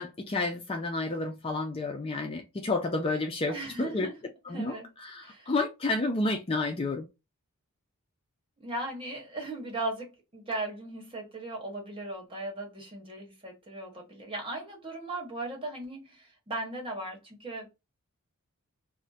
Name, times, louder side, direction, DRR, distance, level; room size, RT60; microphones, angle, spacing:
voice 1, 0.0-4.1 4.5-4.8 5.0-7.0, left 2 dB, 25° left, 0.4 m, -30 dB
voice 2, 3.5-4.2 4.5-4.9 5.2-5.5 8.6-17.7, right 2 dB, 25° right, 1.2 m, -37 dB
2.5 x 2.1 x 3.9 m
head